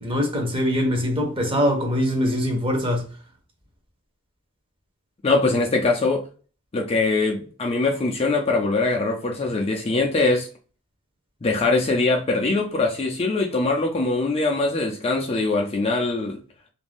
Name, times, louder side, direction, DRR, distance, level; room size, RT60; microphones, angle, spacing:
voice 1, 0.0-3.1, equal, 25° right, 0.7 m, -23 dB
voice 2, 5.2-6.2 6.7-10.5 11.4-16.4, left 3 dB, 25° left, 0.4 m, -22 dB
2.5 x 2.2 x 3.3 m
head